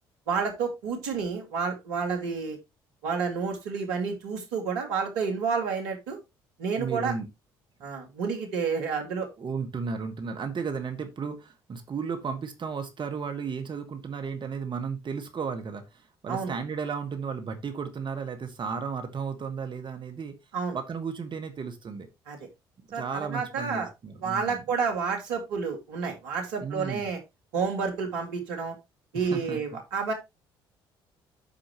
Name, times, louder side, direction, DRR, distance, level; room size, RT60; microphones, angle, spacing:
voice 1, 0.3-2.6 3.0-6.2 6.6-7.1 7.8-9.3 16.3-16.5 20.5-20.8 22.3-22.4 22.9-23.9 24.2-27.2 27.5-28.8 29.1-30.1, right 5 dB, 75° right, 3 dB, 2.3 m, -30 dB
voice 2, 6.8-7.3 9.4-20.3 20.7-22.1 22.9-24.6 26.6-27.1 29.1-29.6, right 5 dB, 40° right, 6 dB, 1.7 m, -34 dB
14.0 x 5.0 x 3.0 m, 0.22 s
hypercardioid pair, 55°, 12 cm